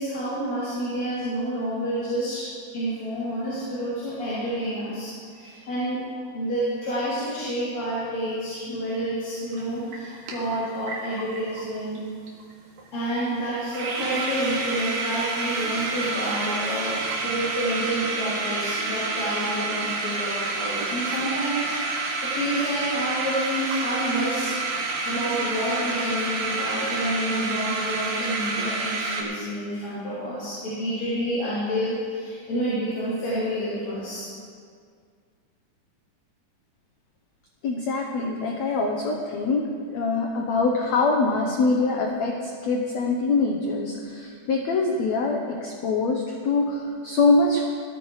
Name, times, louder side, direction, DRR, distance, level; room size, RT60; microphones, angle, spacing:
voice 1, 0.0-2.5 2.7-6.0 6.3-12.0 12.9-24.5 25.1-34.3, equal, 45° left, -12 dB, 4.3 m, -29 dB
sound 1, 9.5-9.6 9.9-11.7 12.0-12.1 12.2-12.5 12.8-12.9 13.3-13.4 13.5-29.2, right 3 dB, 65° right, 3.3 m, -29 dB
voice 2, 37.6-39.6 39.9-47.7, left 3 dB, 80° left, 0 dB, 1.5 m, -24 dB
19.0 x 13.5 x 3.2 m, 2.1 s
omnidirectional pair, 4.5 m